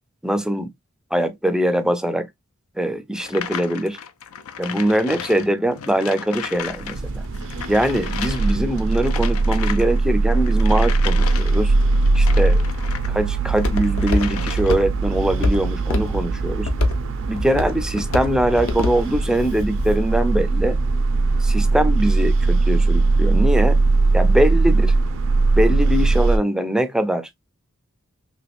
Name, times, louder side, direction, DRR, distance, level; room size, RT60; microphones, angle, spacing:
voice 1, 0.2-0.7 1.1-2.3 2.8-4.0 4.6-7.2 7.7-11.7 12.1-12.6 13.1-16.7 17.3-20.8 21.4-23.8 24.1-24.9 25.6-27.3, right 1 dB, 5° right, 0.4 m, -22 dB
sound 1, 3.2-13.1 13.5-15.0, left 8 dB, 85° left, 0.5 m, -34 dB
sound 2, 6.7-26.4, right 3 dB, 65° right, 0.5 m, -20 dB
Walk footsteps, 12.3-20.2, left 1 dB, 70° left, 0.8 m, -27 dB
3.3 x 3.2 x 2.4 m
head